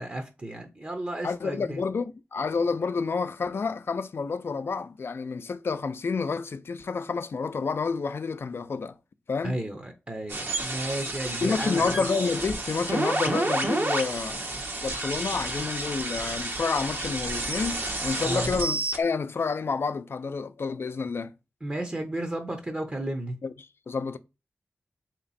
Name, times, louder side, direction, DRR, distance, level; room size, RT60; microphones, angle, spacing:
voice 1, 0.0-1.8 9.4-11.8 18.2-18.5 21.6-23.4, right 1 dB, 30° right, 0.7 m, -33 dB
voice 2, 1.2-9.0 9.3-9.6 11.4-21.3 23.4-24.2, left 4 dB, 65° left, 0.4 m, -29 dB
sound 1, 10.3-19.0, right 2 dB, 60° right, 1.1 m, -30 dB
3.3 x 2.9 x 4.0 m
cardioid pair, 60°, 4 cm